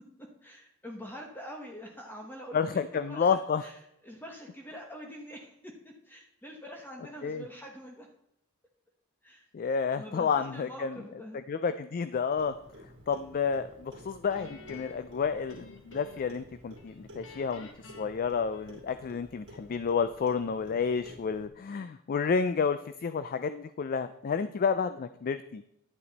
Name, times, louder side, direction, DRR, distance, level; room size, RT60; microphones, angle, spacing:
voice 1, 0.4-2.8 3.1-3.8 4.0-8.1 9.2-9.5 9.9-11.4, equal, 10° left, 1 dB, 1.0 m, -45 dB
voice 2, 2.5-3.6 7.2-7.4 9.5-11.0 11.5-12.5 13.1-25.6, left 6 dB, 45° left, 11 dB, 0.3 m, -30 dB
Clock, 12.4-21.5, equal, 60° right, 1.7 m, -51 dB
Guitar, 14.3-16.4 16.8-19.1, left 3 dB, 65° left, 1.3 m, -51 dB
11.0 x 8.6 x 4.0 m, 0.79 s
head